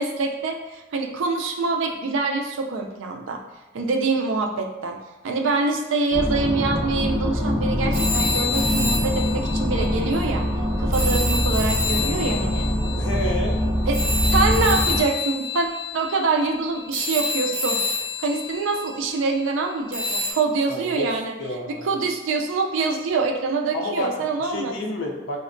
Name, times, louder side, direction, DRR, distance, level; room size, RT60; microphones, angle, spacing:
voice 1, 0.0-3.4 3.7-5.0 5.2-10.4 10.8-12.7 13.9-14.0 14.3-15.7 15.9-17.8 18.2-21.3 21.7-24.7, right 3 dB, 70° right, 3 dB, 0.4 m, -25 dB
sound 1, 6.1-15.0, equal, 5° right, 0.4 m, -23 dB
sound 2, 7.9-10.4 10.9-19.4 19.9-20.3, left 3 dB, 35° right, 0.8 m, -28 dB
voice 2, 13.0-13.6 20.7-21.1 21.4-21.9 23.7-25.4, left 1 dB, 65° left, 0 dB, 0.5 m, -30 dB
4.0 x 2.1 x 2.5 m, 1.0 s
head